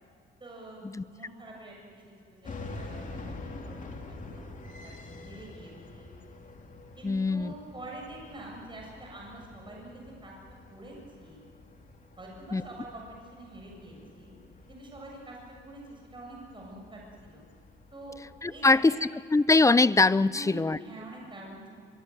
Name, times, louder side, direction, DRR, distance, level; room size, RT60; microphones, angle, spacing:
voice 1, 0.4-4.5 4.8-6.1 7.0-10.3 10.7-11.4 12.2-14.3 14.7-15.4 15.6-17.4 17.9-18.2 18.5-19.0 20.3-21.7, right 1 dB, 25° right, -1 dB, 7.4 m, -46 dB
sound 1, 2.4-18.8, left 2 dB, 40° left, 3.2 m, -47 dB
voice 2, 7.0-7.5 12.5-12.6 18.4-19.0 19.3-20.8, left 3 dB, 15° left, 18 dB, 0.6 m, -22 dB
23.5 x 23.5 x 7.9 m, 2.5 s
cardioid pair, 90°, 20 cm